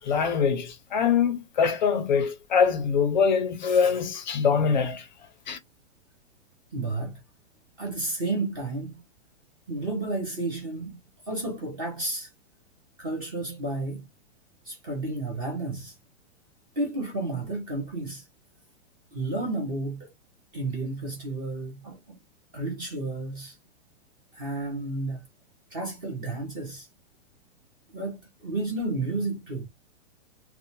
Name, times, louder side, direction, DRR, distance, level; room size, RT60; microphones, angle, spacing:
voice 1, 0.1-5.0 5.5-5.6, left 6 dB, 40° left, 0.5 m, -23 dB
voice 2, 6.7-7.2 7.8-9.0 9.7-11.0 11.3-12.3 13.0-14.1 14.7-15.9 16.8-18.3 19.1-20.1 20.5-22.2 22.5-23.6 24.3-25.2 25.7-26.9 27.9-29.6, right 2 dB, 20° right, 0.5 m, -32 dB
2.6 x 2.0 x 2.8 m
supercardioid pair, 170°, 37 cm